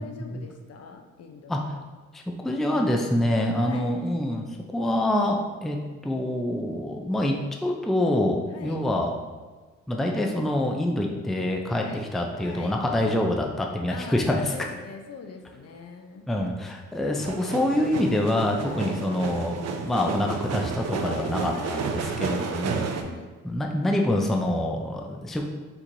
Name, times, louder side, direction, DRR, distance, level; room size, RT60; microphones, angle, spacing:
voice 1, 0.0-1.7 3.5-3.9 8.5-8.9 11.7-12.0 12.4-12.8 13.9-16.3 18.6-19.0 21.0-21.9 22.2-22.6 22.9-23.3, left 4 dB, 55° left, 5 dB, 0.6 m, -41 dB
voice 2, 2.1-4.5 4.7-7.4 7.6-9.1 9.9-14.5 16.3-22.9 23.4-25.4, left 1 dB, ahead, 2 dB, 0.4 m, -26 dB
sound 1, 17.2-23.0, right 5 dB, 60° right, 0.5 m, -31 dB
4.4 x 4.3 x 2.6 m, 1.3 s
cardioid pair, 90°, 30 cm